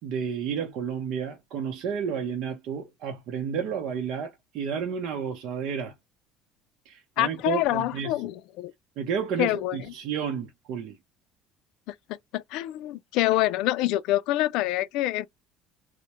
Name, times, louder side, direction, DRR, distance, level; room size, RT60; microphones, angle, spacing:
voice 1, 0.0-5.9 6.9-8.2 9.0-11.0, right 7 dB, 65° right, 0.6 m, -31 dB
voice 2, 7.2-8.7 9.4-9.8 11.9-12.0 12.3-15.3, left 15 dB, 70° left, 0.3 m, -26 dB
2.1 x 2.1 x 2.9 m
cardioid pair, 115°, 0 cm